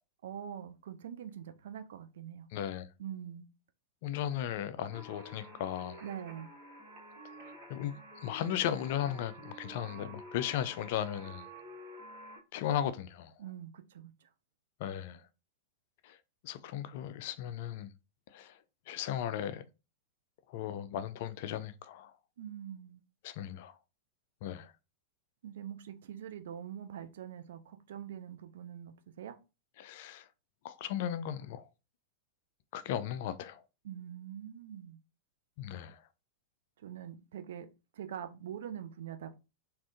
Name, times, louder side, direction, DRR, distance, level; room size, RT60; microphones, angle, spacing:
voice 1, 0.2-2.5 3.0-3.5 6.0-6.5 13.4-14.3 22.4-23.0 25.4-29.3 33.8-35.0 36.8-37.7 37.9-39.4, right 9 dB, 60° right, 0.4 m, -44 dB
voice 2, 2.5-2.9 4.0-6.0 7.7-11.5 12.5-13.3 14.8-15.2 16.4-17.9 18.3-18.5 18.9-19.6 20.5-22.1 23.2-23.7 24.4-24.7 29.8-30.2 30.6-31.6 32.7-33.6 35.6-35.9, left 10 dB, 50° left, 0.3 m, -36 dB
sound 1, 4.9-12.4, equal, 40° right, 1.0 m, -50 dB
3.4 x 2.5 x 2.4 m
figure-of-eight pair, 95°, 0 cm